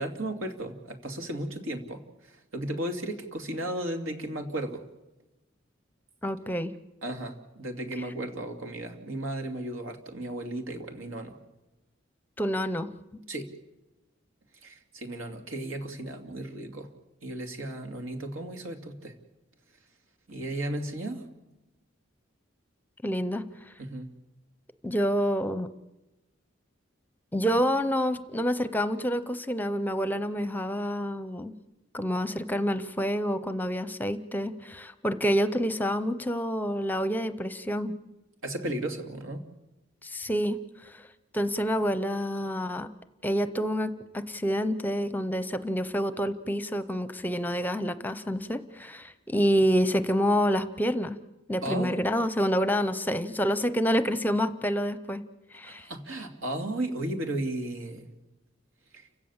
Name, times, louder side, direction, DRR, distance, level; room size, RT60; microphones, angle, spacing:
voice 1, 0.0-4.8 7.0-11.4 13.3-13.5 14.6-16.9 17.2-19.1 20.3-21.2 23.8-24.1 38.4-39.4 51.6-51.9 55.6-58.1 58.9-59.1, right 1 dB, 85° right, 5 dB, 2.7 m, -35 dB
voice 2, 6.2-6.7 12.4-13.2 23.0-23.7 24.8-25.7 27.3-31.5 31.9-38.0 40.0-41.1 41.3-42.9 43.2-51.2 51.5-55.2 55.5-55.9, equal, 10° left, 13 dB, 0.7 m, -28 dB
29.5 x 16.5 x 7.3 m, 1.0 s
head